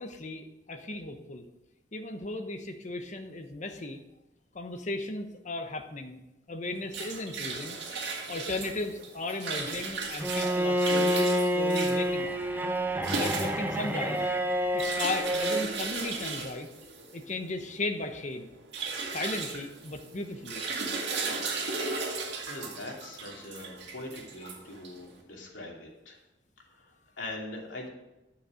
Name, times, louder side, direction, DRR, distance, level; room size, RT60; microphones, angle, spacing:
voice 1, 0.0-1.4 1.9-4.0 4.5-6.2 6.5-7.8 8.3-12.3 13.0-14.2 14.7-16.7 17.1-18.5 19.1-20.6, left 2 dB, 40° left, 6 dB, 1.0 m, -36 dB
sound 1, 6.6-25.2, right 4 dB, 65° right, 2.1 m, -36 dB
Bowed string instrument, 10.2-15.7, equal, 10° right, 0.7 m, -28 dB
voice 2, 22.5-26.2 26.7-27.9, left 2 dB, 90° left, -2 dB, 2.7 m, -42 dB
11.0 x 7.3 x 5.0 m, 0.98 s
head